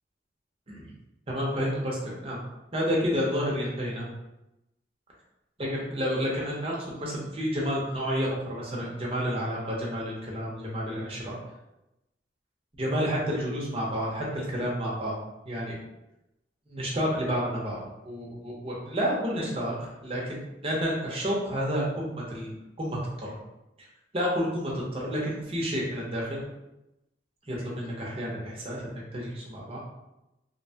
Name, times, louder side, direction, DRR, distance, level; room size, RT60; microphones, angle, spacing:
voice 1, 1.3-2.4 2.7-4.1 5.6-11.4 12.8-15.2 15.4-15.8 16.7-23.4 24.1-26.4 27.5-29.8, equal, 30° right, -4 dB, 0.7 m, -30 dB
2.8 x 2.1 x 2.7 m, 0.92 s
head